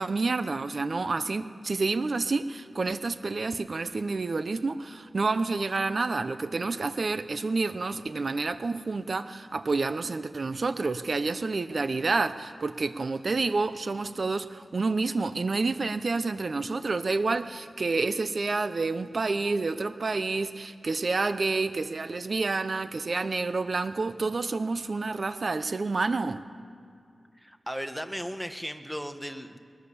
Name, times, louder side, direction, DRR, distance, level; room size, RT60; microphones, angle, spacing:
voice 1, 0.0-26.4, right 3 dB, 55° right, 11 dB, 0.7 m, -29 dB
voice 2, 27.4-29.6, equal, ahead, 8 dB, 1.4 m, -36 dB
22.5 x 19.5 x 7.0 m, 2.4 s
wide cardioid pair, 70°, 0 cm